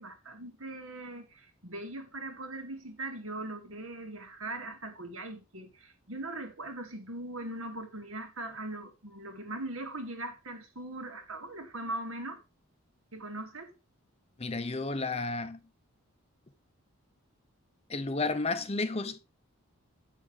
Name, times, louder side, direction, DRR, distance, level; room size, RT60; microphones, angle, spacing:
voice 1, 0.0-12.4 13.1-13.7, right 2 dB, 70° right, 2.1 m, -40 dB
voice 2, 14.4-15.6 17.9-19.2, left 3 dB, 30° left, 0.6 m, -32 dB
8.4 x 6.3 x 4.8 m
head